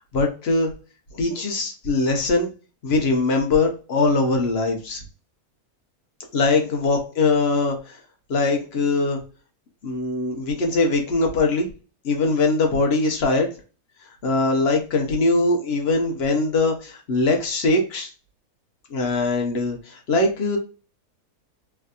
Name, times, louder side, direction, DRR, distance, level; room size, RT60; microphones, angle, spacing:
voice 1, 0.1-0.7 1.1-2.5 2.8-5.0 6.3-8.0 8.3-9.2 9.8-11.7 12.0-13.5 14.2-18.1 18.9-20.6, left 3 dB, 50° left, 3 dB, 0.9 m, -21 dB
3.3 x 2.6 x 2.2 m, 0.34 s
omnidirectional pair, 1.6 m